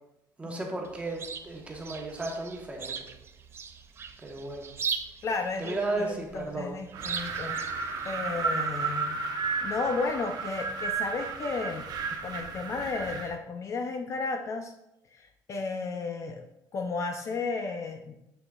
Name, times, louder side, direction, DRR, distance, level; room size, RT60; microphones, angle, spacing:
voice 1, 0.4-3.0 4.2-4.7 5.6-6.7, right 2 dB, 15° right, 0 dB, 1.1 m, -34 dB
Chirp tweet, 0.8-8.5, right 6 dB, 30° right, 0.4 m, -40 dB
voice 2, 5.2-7.6 8.0-9.2 9.6-14.7 15.1-16.4 16.7-18.2, left 4 dB, 40° left, 5 dB, 0.4 m, -33 dB
Wind, 6.9-13.4, right 5 dB, 60° right, 0.8 m, -33 dB
6.8 x 6.0 x 2.3 m, 0.85 s
cardioid pair, 145°, 8 cm